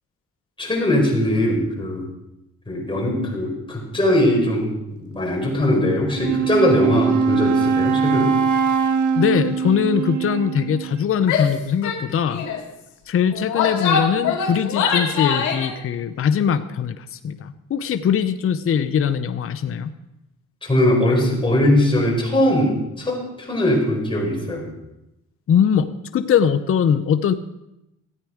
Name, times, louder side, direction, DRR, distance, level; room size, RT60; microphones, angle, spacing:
voice 1, 0.6-2.1 2.7-4.7 5.0-8.3 20.6-24.7, left 1 dB, 15° left, -1 dB, 4.4 m, -20 dB
Wind instrument woodwind instrument, 6.1-11.0, right 6 dB, 80° right, 0.9 m, -21 dB
voice 2, 9.2-12.5 13.1-19.9 25.5-27.3, left 8 dB, 45° left, 10 dB, 0.7 m, -21 dB
Female speech woman speaking / Yell, 11.2-11.5 11.8-12.0 12.3-12.6 13.3-15.7, left 6 dB, 80° left, 2.2 m, -23 dB
13.5 x 9.0 x 4.9 m, 0.89 s
cardioid pair, 90°, 30 cm